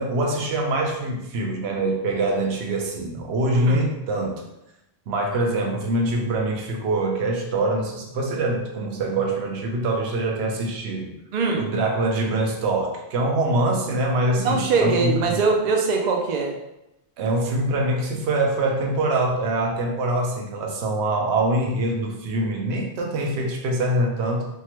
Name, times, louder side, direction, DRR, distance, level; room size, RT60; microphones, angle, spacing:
voice 1, 0.0-4.4 5.1-11.1 11.6-15.4 17.2-24.5, right 2 dB, 75° right, 1 dB, 0.9 m, -24 dB
voice 2, 11.3-11.7 14.4-16.5, right 4 dB, 55° right, 2 dB, 0.5 m, -22 dB
3.4 x 2.1 x 2.8 m, 0.89 s
omnidirectional pair, 1.1 m